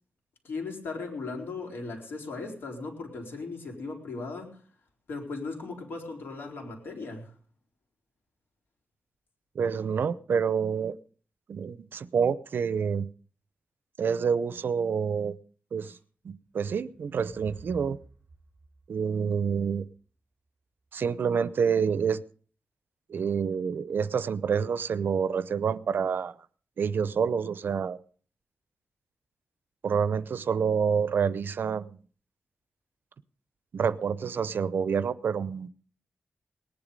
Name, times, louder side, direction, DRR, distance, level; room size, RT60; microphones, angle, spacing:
voice 1, 0.4-4.7 5.1-7.4 15.8-15.9, left 3 dB, 90° left, 1 dB, 4.1 m, -37 dB
voice 2, 9.5-10.9 11.5-13.1 14.0-15.3 15.7-15.9 16.2-18.0 18.9-19.8 20.9-22.2 23.1-26.4 26.8-28.0 29.8-32.0 33.7-35.7, right 6 dB, 70° right, 17 dB, 0.7 m, -27 dB
sound 1, 16.5-20.0, right 4 dB, 25° right, 3.4 m, -50 dB
19.0 x 10.5 x 5.3 m, 0.43 s
wide cardioid pair, 120°, 4 cm